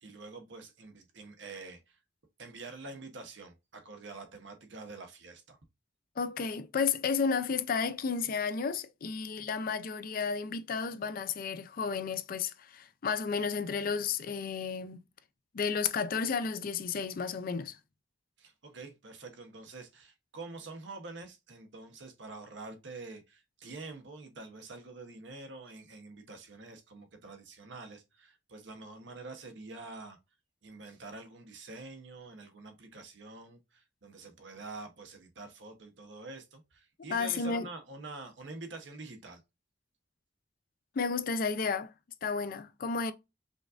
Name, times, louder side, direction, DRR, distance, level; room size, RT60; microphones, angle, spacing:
voice 1, 0.0-2.0 2.4-5.6 18.4-30.2 30.6-39.4, right 3 dB, 85° right, 0.9 m, -46 dB
voice 2, 6.2-15.0 15.5-17.8 37.1-37.7 41.0-41.9 42.2-43.1, left 5 dB, 50° left, 0.4 m, -32 dB
5.1 x 2.5 x 2.4 m
head